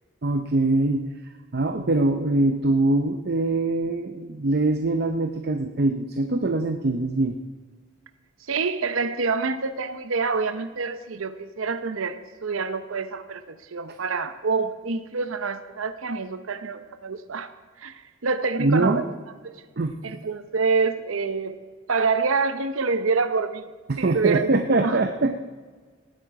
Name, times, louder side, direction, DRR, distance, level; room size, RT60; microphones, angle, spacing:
voice 1, 0.2-1.1 1.5-7.4 18.6-19.0 19.8-19.9 23.9-25.4, right 2 dB, 50° right, 6 dB, 0.7 m, -23 dB
voice 2, 8.5-17.5 17.8-19.0 19.4-19.6 20.0-21.6 21.9-23.7 24.0-24.5 24.8-25.0, right 4 dB, 90° right, 11 dB, 0.8 m, -26 dB
18.5 x 9.8 x 4.8 m, 1.5 s
head